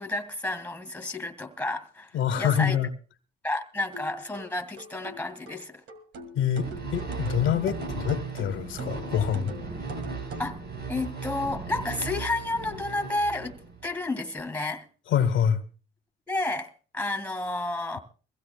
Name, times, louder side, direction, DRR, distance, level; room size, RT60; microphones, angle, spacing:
voice 1, 0.0-2.1 2.4-2.8 3.4-5.8 10.4-10.6 10.9-14.8 16.3-18.0, left 2 dB, 5° left, 2.0 m, -31 dB
voice 2, 2.1-2.9 6.4-9.5 15.1-15.6, left 8 dB, 80° left, 1.2 m, -26 dB
sound 1, 3.9-10.6, right 2 dB, 70° right, 1.9 m, -41 dB
sound 2, 6.5-14.0, right 5 dB, 55° right, 3.8 m, -37 dB
23.0 x 16.0 x 2.3 m
cardioid pair, 90°, 20 cm